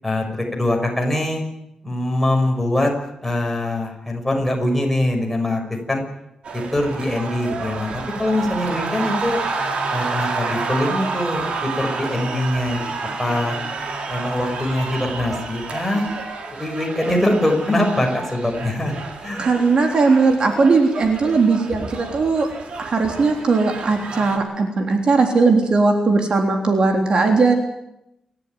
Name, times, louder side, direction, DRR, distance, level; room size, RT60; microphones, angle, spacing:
voice 1, 0.0-1.4 1.8-2.9 3.2-5.6 5.9-6.0 6.5-9.4 9.9-12.8 13.2-13.6 14.1-16.1 16.5-18.9 19.2-19.5, left 1 dB, 5° left, 1 dB, 6.4 m, -22 dB
sound 1, 6.4-24.4, right 4 dB, 65° right, 3.9 m, -29 dB
voice 2, 19.4-22.5 22.8-27.5, right 4 dB, 50° right, 3 dB, 3.5 m, -18 dB
29.0 x 13.5 x 9.5 m, 0.84 s
wide cardioid pair, 130°, 2 cm